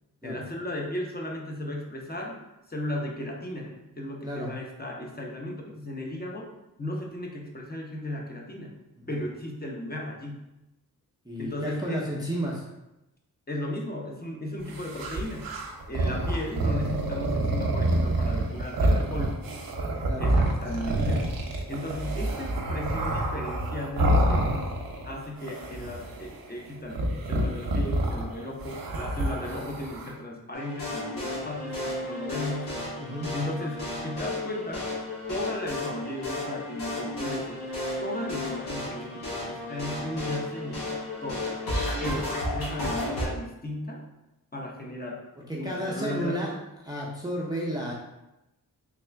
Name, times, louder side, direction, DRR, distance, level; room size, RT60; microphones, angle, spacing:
voice 1, 0.2-2.4 2.7-6.5 6.8-8.8 9.1-10.5 11.4-12.1 13.5-15.5 15.9-19.5 20.2-21.4 21.7-24.7 25.0-27.0 27.3-32.8 33.3-34.9 35.3-37.6 38.0-40.9 41.2-41.5 42.0-44.0 44.5-45.2 45.5-46.6, left 1 dB, 25° left, -1 dB, 0.9 m, -35 dB
voice 2, 4.2-4.5 9.0-9.1 11.3-12.6 20.1-20.3 33.0-33.3 45.5-46.5 46.9-47.9, equal, 10° right, -4 dB, 0.6 m, -32 dB
sound 1, 14.7-25.1 25.4-26.4 26.9-30.1, right 1 dB, 60° right, 0.7 m, -27 dB
sound 2, 30.5-43.3, left 1 dB, 75° left, 1.5 m, -33 dB
3.6 x 2.4 x 3.4 m, 0.94 s
cardioid pair, 50°, 38 cm